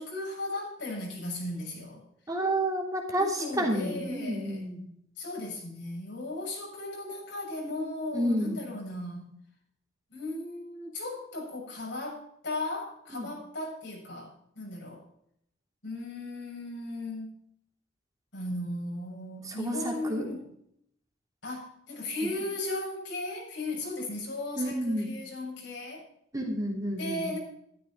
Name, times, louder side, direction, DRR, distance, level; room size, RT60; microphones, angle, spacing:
voice 1, 0.0-2.0 3.2-4.6 5.2-9.3 10.1-15.0 15.8-17.3 18.3-20.5 21.4-26.1 27.0-27.4, left 2 dB, 75° left, -2 dB, 7.4 m, -36 dB
voice 2, 2.3-4.8 8.1-8.6 13.1-13.3 19.4-20.3 22.2-22.3 24.6-25.1 26.3-27.3, right 1 dB, 20° right, 0 dB, 3.2 m, -30 dB
14.5 x 13.0 x 4.5 m, 0.73 s
head